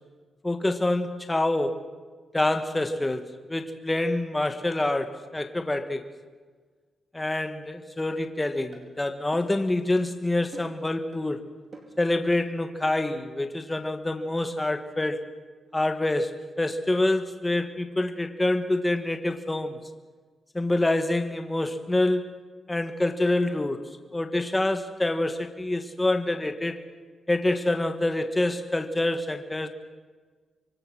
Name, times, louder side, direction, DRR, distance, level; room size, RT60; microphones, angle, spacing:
voice 1, 0.4-1.8 2.3-6.1 7.1-11.5 12.0-15.3 15.7-19.8 20.5-22.3 22.7-23.8 24.1-26.8 27.3-29.7, left 2 dB, 15° left, 7 dB, 1.5 m, -26 dB
sound 1, 8.1-8.2 8.7-8.9 9.3-9.6 9.9-10.1 10.5-10.8 11.1-11.3 11.7-12.0 12.3-12.5, right 3 dB, 45° right, 4.3 m, -46 dB
26.0 x 24.0 x 6.3 m, 1.5 s
wide cardioid pair, 120°, 0 cm